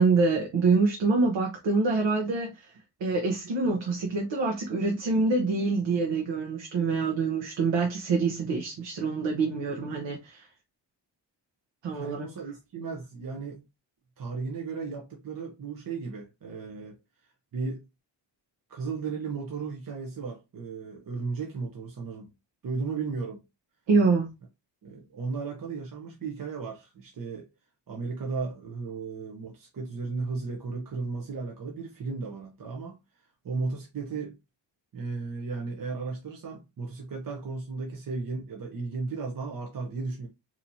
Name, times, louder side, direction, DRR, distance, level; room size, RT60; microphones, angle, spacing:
voice 1, 0.0-2.7 3.0-10.5 11.8-12.3 23.9-24.3, right 4 dB, 90° right, 0.9 m, -25 dB
voice 2, 11.9-13.6 14.2-17.0 17.5-17.8 18.7-22.3 22.6-23.4 24.8-27.5 27.9-34.4 34.9-40.3, right 4 dB, 50° right, 0.9 m, -35 dB
4.2 x 2.9 x 2.7 m
cardioid pair, 95°, 43 cm